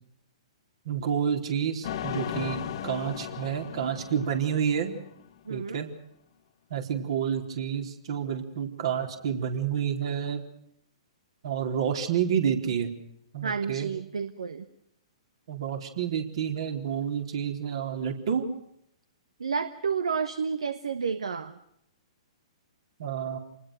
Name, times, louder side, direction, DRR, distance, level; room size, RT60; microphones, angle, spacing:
voice 1, 0.9-4.9 5.5-5.9 6.7-10.4 11.4-12.9 13.3-13.9 15.5-18.5 23.0-23.4, right 8 dB, 55° right, 4 dB, 4.1 m, -29 dB
sound 1, 1.8-5.3, left 10 dB, 50° left, 1.5 m, -36 dB
voice 2, 5.5-5.8 13.4-14.7 19.4-21.6, right 6 dB, 70° right, 11 dB, 1.3 m, -30 dB
28.0 x 20.0 x 6.5 m, 0.74 s
figure-of-eight pair, 115°, 3 cm